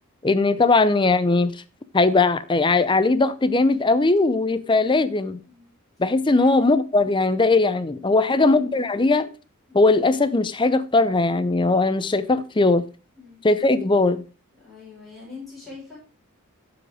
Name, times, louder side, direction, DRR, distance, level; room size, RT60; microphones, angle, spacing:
voice 1, 0.2-1.5 1.9-5.4 6.0-9.3 9.7-12.8 13.4-14.2, left 3 dB, 20° left, 0.6 m, -19 dB
voice 2, 6.3-6.7 8.1-9.0 9.7-9.8 13.2-13.4 14.6-16.0, left 4 dB, ahead, 6.4 m, -42 dB
12.5 x 5.1 x 4.7 m
head